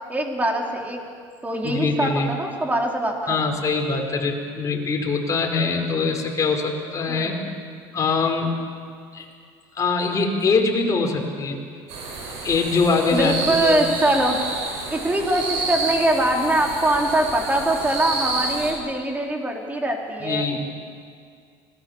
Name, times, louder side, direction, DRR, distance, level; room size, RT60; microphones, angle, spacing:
voice 1, 0.1-1.0 1.4-3.5 7.1-7.3 13.1-14.4 14.9-20.7, right 1 dB, 15° right, 1 dB, 4.2 m, -23 dB
voice 2, 1.6-2.3 3.3-7.4 7.9-8.5 9.1-9.2 9.7-11.6 12.4-13.8 20.2-20.7, left 4 dB, 30° left, 1 dB, 4.9 m, -23 dB
sound 1, 11.9-18.7, right 3 dB, 65° right, 7.3 m, -29 dB
26.0 x 19.5 x 7.4 m, 2.2 s
supercardioid pair, 105°, 11 cm